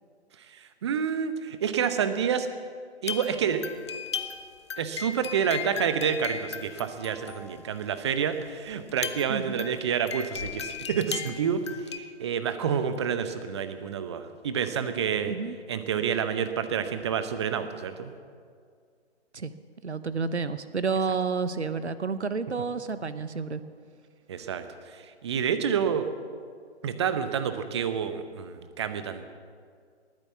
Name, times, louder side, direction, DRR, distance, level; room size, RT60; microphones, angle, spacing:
voice 1, 0.5-2.5 3.0-3.6 4.8-15.4 15.7-18.1 24.3-26.1 26.8-29.2, right 7 dB, 25° right, 10 dB, 0.8 m, -29 dB
sound 1, 3.0-7.9 8.4-8.5 8.7-12.0, left 6 dB, 25° left, 0.6 m, -37 dB
voice 2, 9.3-9.6 15.3-15.6 19.3-19.5 19.8-23.6, right 5 dB, 75° right, 13 dB, 0.9 m, -30 dB
19.5 x 9.7 x 7.1 m, 2.1 s
figure-of-eight pair, 135°, 34 cm